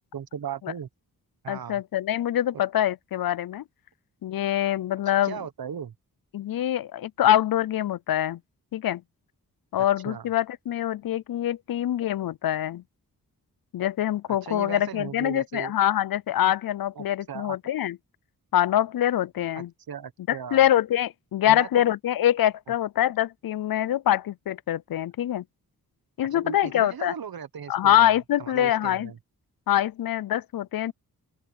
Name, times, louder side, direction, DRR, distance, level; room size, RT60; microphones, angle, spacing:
voice 1, 0.1-0.9 1.4-1.8 5.2-5.9 10.0-10.3 14.4-15.7 17.0-17.6 19.5-20.6 21.4-21.7 26.3-27.9 28.4-29.2, right 8 dB, 70° right, 1.3 m, -37 dB
voice 2, 1.5-3.6 4.2-5.4 6.3-8.4 8.7-9.0 9.7-12.8 13.7-18.0 18.5-19.7 20.3-25.4 26.2-27.1 27.7-29.1 29.7-30.9, left 12 dB, 65° left, 0.5 m, -24 dB
open air
wide cardioid pair, 135°, 37 cm